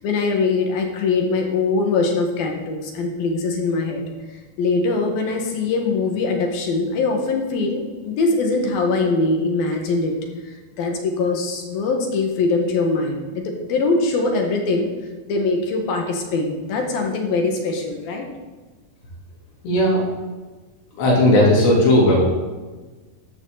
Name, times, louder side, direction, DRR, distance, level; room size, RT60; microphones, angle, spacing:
voice 1, 0.0-4.0 4.6-10.1 10.5-14.9 15.3-18.3, left 3 dB, 65° left, 2 dB, 3.2 m, -22 dB
voice 2, 19.6-20.0 21.0-22.2, left 1 dB, 80° left, -3 dB, 5.6 m, -15 dB
14.0 x 13.5 x 4.0 m, 1.3 s
omnidirectional pair, 4.8 m